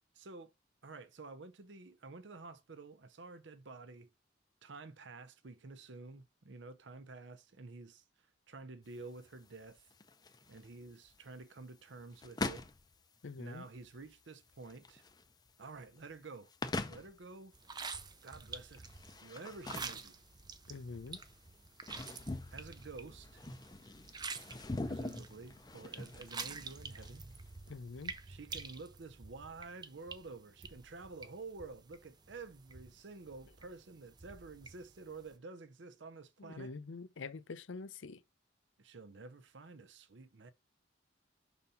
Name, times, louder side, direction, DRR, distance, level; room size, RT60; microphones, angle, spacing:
voice 1, 0.1-0.5 0.8-4.1 4.6-9.9 10.5-12.7 13.4-15.0 15.6-17.5 18.2-18.9 19.2-20.2 22.5-23.4 24.8-27.2 28.3-36.7 38.8-40.5, right 3 dB, 70° right, 0.7 m, -50 dB
sound 1, 8.8-28.0, left 2 dB, 20° left, 0.5 m, -45 dB
voice 2, 13.2-13.7 20.7-21.2 27.7-28.1 36.4-38.2, left 4 dB, 85° left, 0.6 m, -45 dB
sound 2, 17.5-35.4, right 4 dB, 20° right, 0.5 m, -49 dB
5.6 x 4.0 x 5.4 m
head